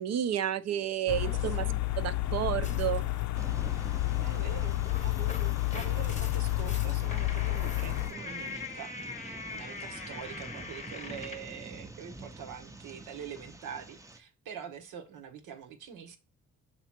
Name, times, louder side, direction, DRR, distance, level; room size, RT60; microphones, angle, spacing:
voice 1, 0.0-1.7 2.0-3.0, right 10 dB, 60° right, 0.6 m, -31 dB
sound 1, 1.1-8.1, left 16 dB, 70° left, 0.5 m, -30 dB
voice 2, 1.2-1.8 4.2-16.2, right 7 dB, 90° right, 1.2 m, -45 dB
sound 2, 2.6-3.3 4.6-11.5, left 4 dB, 25° left, 0.7 m, -43 dB
sound 3, 3.3-14.2, right 2 dB, 10° right, 0.6 m, -48 dB
6.7 x 3.0 x 5.8 m
cardioid pair, 90°, 30 cm